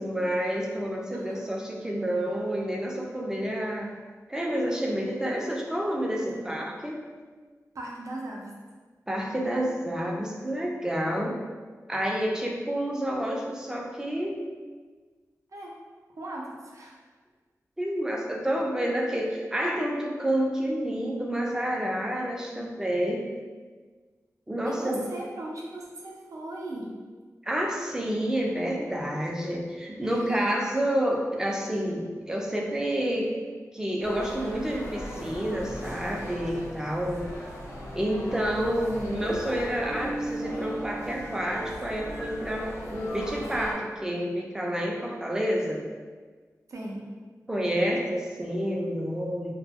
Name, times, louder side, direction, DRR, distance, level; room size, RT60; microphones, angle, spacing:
voice 1, 0.0-3.9 4.3-7.0 9.1-11.4 11.9-14.4 17.8-23.3 24.5-25.1 27.4-33.3 33.7-37.3 37.9-45.9 47.5-49.5, equal, 10° right, -1 dB, 0.4 m, -29 dB
voice 2, 7.7-8.5 15.5-15.7 16.2-16.9 22.4-22.7 24.7-26.9 30.3-30.4 46.7-47.1, right 1 dB, 65° right, -2 dB, 0.5 m, -38 dB
sound 1, 34.0-43.7, equal, 80° left, 0.8 m, -37 dB
2.2 x 2.1 x 3.4 m, 1.4 s
wide cardioid pair, 90°, 6 cm